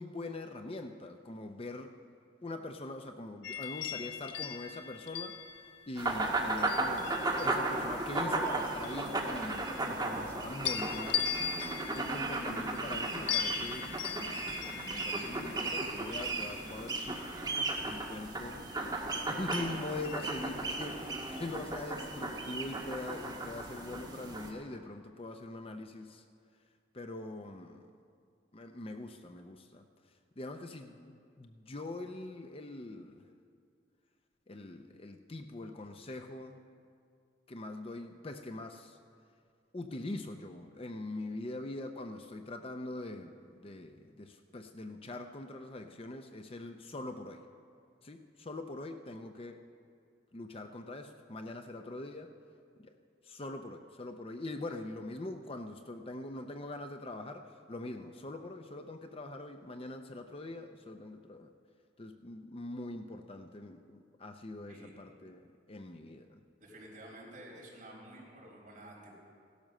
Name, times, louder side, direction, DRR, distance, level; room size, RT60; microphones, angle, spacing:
voice 1, 0.0-2.0 2.4-5.4 5.9-11.3 11.9-14.0 14.7-17.2 17.9-18.6 19.3-26.2 26.9-27.9 28.5-29.9 30.4-33.2 34.5-36.6 37.5-39.0 39.7-47.5 48.0-49.6 50.3-52.3 52.8-53.0 53.2-61.5 62.0-66.4, left 2 dB, 30° left, 6 dB, 0.6 m, -43 dB
sound 1, 3.4-7.8 8.4-10.3 10.6-17.6 19.5-20.9 21.4-21.6, left 8 dB, 80° left, 1.1 m, -40 dB
sound 2, 6.0-24.5, right 2 dB, 20° right, 1.8 m, -35 dB
voice 2, 66.6-69.2, right 1 dB, 45° right, -4 dB, 5.1 m, -51 dB
16.5 x 12.0 x 6.5 m, 2.3 s
head